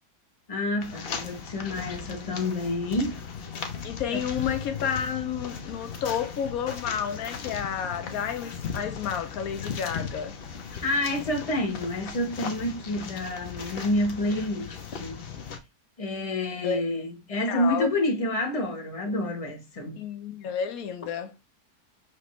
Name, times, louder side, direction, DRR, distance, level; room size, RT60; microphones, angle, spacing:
voice 1, 0.5-3.2 4.1-4.2 10.8-15.2 16.0-20.0, left 1 dB, 25° left, 0.9 m, -28 dB
sound 1, 0.8-15.6, left 6 dB, 55° left, 0.7 m, -37 dB
voice 2, 3.8-10.4 16.6-16.8 17.5-17.9 20.0-21.3, left 8 dB, 70° left, 1.0 m, -30 dB
5.9 x 2.6 x 3.0 m
omnidirectional pair, 1.6 m